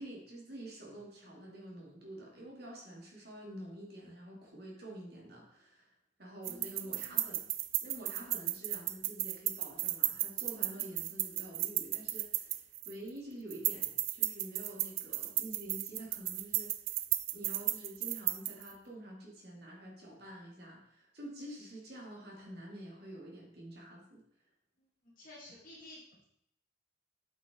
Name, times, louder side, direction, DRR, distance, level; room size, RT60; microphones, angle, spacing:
voice 1, 0.0-5.9 6.2-7.5 7.8-16.9 17.3-24.2, right 1 dB, 55° right, -2 dB, 2.5 m, -48 dB
voice 2, 6.4-7.4 10.5-10.9 25.2-26.2, left 1 dB, 45° left, -7 dB, 1.7 m, -54 dB
sound 1, 6.4-13.1 13.5-18.7, right 15 dB, 85° right, 0.5 m, -34 dB
8.2 x 5.7 x 3.7 m, 0.74 s
head